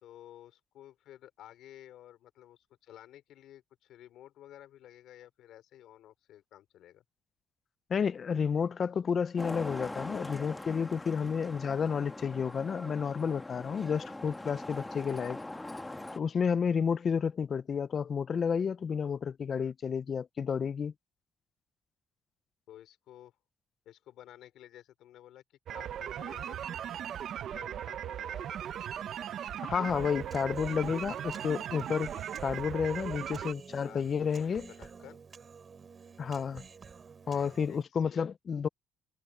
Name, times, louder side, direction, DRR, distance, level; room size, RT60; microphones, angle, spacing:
voice 1, 0.0-7.0 22.7-23.4 23.9-26.6 27.5-28.6 32.9-33.0 33.8-35.2 37.3-38.2, left 12 dB, 70° left, 3.9 m, -53 dB
voice 2, 7.9-15.4 16.1-20.9 29.6-32.1 32.4-34.7 36.2-36.6 37.3-38.7, left 6 dB, 35° left, 0.4 m, -31 dB
Traffic noise roadway noise, 9.4-16.2, left 2 dB, 10° left, 1.3 m, -42 dB
sound 1, 25.7-33.5, right 10 dB, 55° right, 0.7 m, -38 dB
Human voice, 29.8-37.8, right 5 dB, 30° right, 5.9 m, -50 dB
cardioid pair, 135°, 0 cm